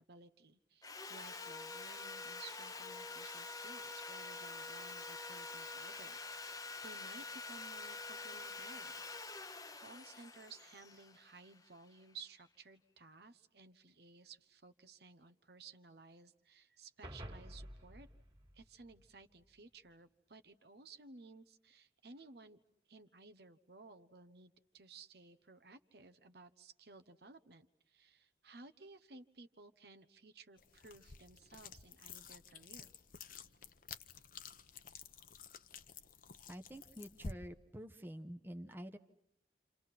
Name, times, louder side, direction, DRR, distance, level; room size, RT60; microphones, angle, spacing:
voice 1, 0.0-18.1 18.5-22.6 22.9-32.9, right 3 dB, 60° right, 11 dB, 1.1 m, -57 dB
Sawing, 0.8-11.9, left 3 dB, 20° left, 0.9 m, -47 dB
sound 1, 17.0-19.5, equal, 30° right, 2.2 m, -51 dB
sound 2, 30.6-37.3, left 5 dB, 50° left, 0.9 m, -52 dB
voice 2, 36.5-39.0, equal, 10° right, 7 dB, 1.0 m, -48 dB
30.0 x 27.5 x 6.0 m, 0.75 s
head